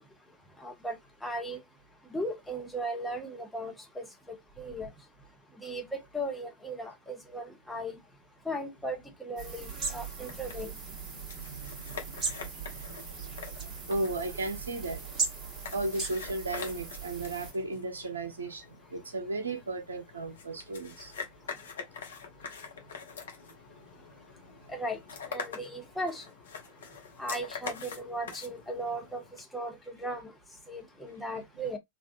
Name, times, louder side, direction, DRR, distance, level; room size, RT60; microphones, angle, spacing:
voice 1, 0.6-1.6 2.1-4.9 5.6-8.0 8.4-10.7 24.7-25.0 25.3-26.2 27.2-29.2 29.5-30.3 30.7-31.8, right 1 dB, 5° left, 1.0 m, -37 dB
sound 1, 9.4-17.5, right 5 dB, 25° right, 1.2 m, -38 dB
sound 2, 9.6-29.4, left 6 dB, 65° left, 0.9 m, -45 dB
voice 2, 11.4-15.0 15.7-18.6 18.9-21.1, right 2 dB, 75° right, 0.7 m, -36 dB
3.4 x 2.4 x 2.5 m
figure-of-eight pair, 90°, 0 cm